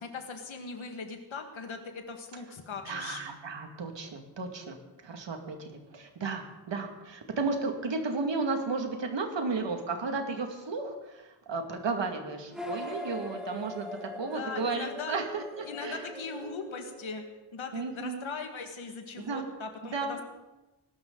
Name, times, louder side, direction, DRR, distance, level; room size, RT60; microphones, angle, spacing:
voice 1, 0.0-3.2 14.1-15.2 15.7-17.2 17.5-20.2, left 4 dB, 80° left, 5 dB, 2.1 m, -40 dB
voice 2, 2.8-4.8 5.0-16.1 17.7-18.3 19.2-19.5 19.9-20.2, right 4 dB, 65° right, 4 dB, 2.4 m, -34 dB
sound 1, 12.5-17.3, left 1 dB, ahead, 2.2 m, -41 dB
20.0 x 12.5 x 4.0 m, 1.1 s
wide cardioid pair, 140°, 47 cm